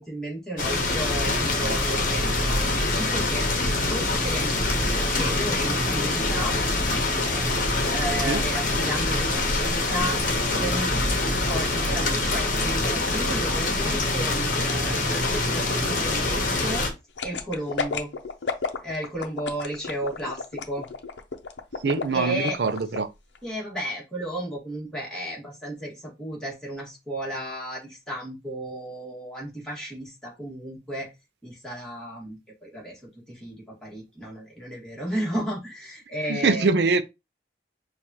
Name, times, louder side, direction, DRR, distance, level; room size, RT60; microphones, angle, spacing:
voice 1, 0.0-6.6 7.6-16.9 17.2-18.1 18.8-20.9 22.1-22.6 23.4-31.1 31.4-33.0 33.3-36.7, right 1 dB, 5° left, 1.8 m, -33 dB
sound 1, 0.6-16.9, left 2 dB, 45° left, 1.0 m, -25 dB
sound 2, 17.2-23.0 23.4-23.5, left 4 dB, 85° left, 0.7 m, -31 dB
voice 2, 21.8-23.1 36.3-37.0, right 4 dB, 70° right, 0.5 m, -23 dB
6.3 x 2.4 x 2.9 m
head